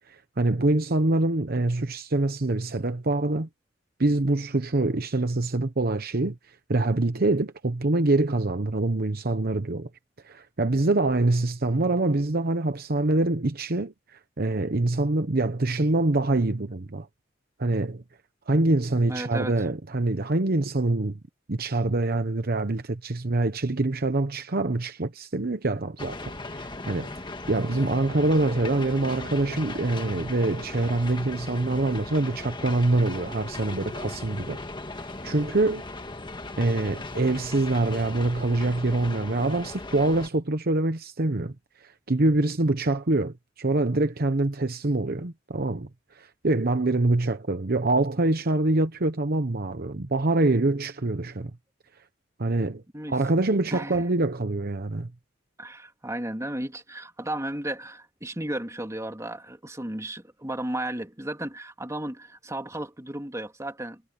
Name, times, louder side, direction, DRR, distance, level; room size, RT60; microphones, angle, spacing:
voice 1, 0.1-3.5 4.0-9.9 10.2-17.1 17.6-18.0 18.5-21.2 21.5-27.1 27.5-34.6 35.2-35.8 36.6-51.5 52.4-52.8 53.1-55.1, right 2 dB, 55° right, 1.0 m, -25 dB
voice 2, 19.1-19.5 52.9-53.1 53.7-54.0 55.6-64.0, right 1 dB, 15° right, 3.2 m, -34 dB
sound 1, 26.0-40.3, left 2 dB, 25° left, 1.6 m, -38 dB
head